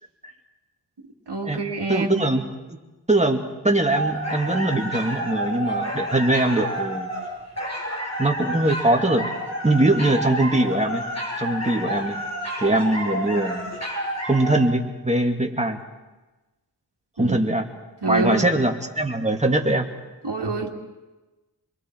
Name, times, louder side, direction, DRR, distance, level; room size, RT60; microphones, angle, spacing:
voice 1, 1.3-2.3 17.2-17.4 18.0-18.5 20.2-20.7, right 3 dB, 80° right, -2 dB, 2.0 m, -26 dB
voice 2, 1.9-2.4 3.1-7.1 8.2-9.3 9.6-11.0 11.4-12.2 12.6-13.7 14.2-15.8 17.2-17.7 18.1-19.9, right 1 dB, 15° right, 3 dB, 2.1 m, -22 dB
sound 1, 3.9-14.6, equal, 40° left, 7.4 m, -30 dB
28.5 x 22.5 x 4.5 m, 1.1 s
wide cardioid pair, 55°, 40 cm